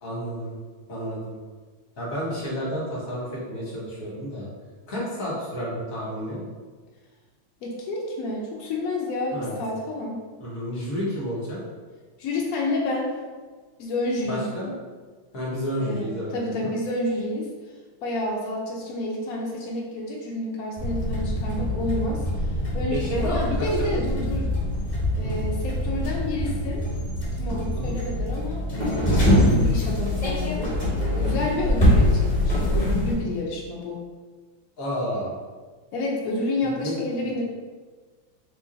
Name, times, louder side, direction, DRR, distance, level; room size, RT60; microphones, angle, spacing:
voice 1, 0.0-0.6 0.9-1.4 2.0-4.5 4.9-6.4 9.3-9.6 10.4-11.6 14.3-14.7 15.3-16.7 22.9-24.2 25.2-25.3 27.7-28.0 31.2-31.5 34.8-35.3 36.8-37.0, equal, 50° left, -5 dB, 1.2 m, -31 dB
voice 2, 7.6-10.2 12.2-13.1 13.8-14.5 15.8-17.5 18.0-22.2 22.7-24.4 25.1-26.8 27.3-30.7 31.2-34.0 35.9-37.4, left 2 dB, 80° left, -1 dB, 0.7 m, -29 dB
sound 1, 20.8-33.1, left 1 dB, 30° left, 0.9 m, -24 dB
3.1 x 2.5 x 3.8 m, 1.4 s
omnidirectional pair, 2.2 m